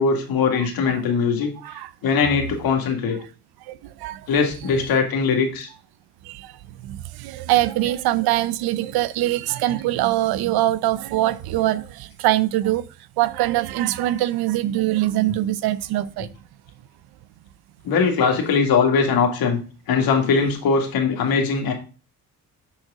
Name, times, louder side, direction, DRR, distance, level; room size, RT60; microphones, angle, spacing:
voice 1, 0.0-1.5 2.0-3.2 4.3-5.7 17.9-19.6 19.9-21.7, left 5 dB, 75° left, 2.1 m, -20 dB
voice 2, 0.5-1.0 1.6-1.9 3.7-4.2 6.3-6.5 6.8-12.9 13.2-16.3, right 15 dB, 85° right, 0.6 m, -23 dB
7.0 x 4.8 x 4.8 m
cardioid pair, 85°, 36 cm